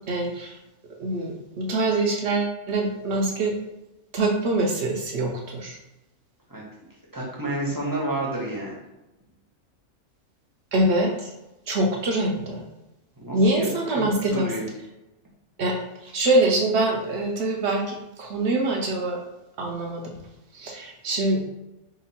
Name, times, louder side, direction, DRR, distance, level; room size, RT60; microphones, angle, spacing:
voice 1, 0.1-0.6 1.0-3.6 4.1-5.8 10.7-11.3 11.7-12.6 13.3-14.5 15.6-15.8 16.0-19.2 19.6-20.1 20.5-21.4, right 2 dB, 65° right, 1 dB, 0.7 m, -24 dB
voice 2, 7.1-8.8 13.2-14.7, right 1 dB, 20° right, -5 dB, 0.5 m, -30 dB
2.9 x 2.4 x 4.0 m, 0.98 s
omnidirectional pair, 1.5 m